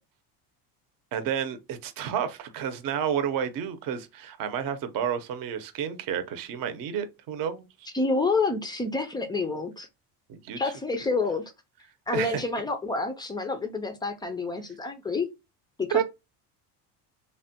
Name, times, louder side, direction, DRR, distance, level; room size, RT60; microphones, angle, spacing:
voice 1, 1.1-7.9 10.3-10.6 12.1-12.4 15.9-16.0, right 8 dB, 50° right, 0.7 m, -30 dB
voice 2, 7.9-9.9 10.6-11.4 12.1-15.3 15.8-16.0, left 3 dB, 10° left, 0.3 m, -28 dB
3.2 x 2.2 x 2.8 m
cardioid pair, 120°, 43 cm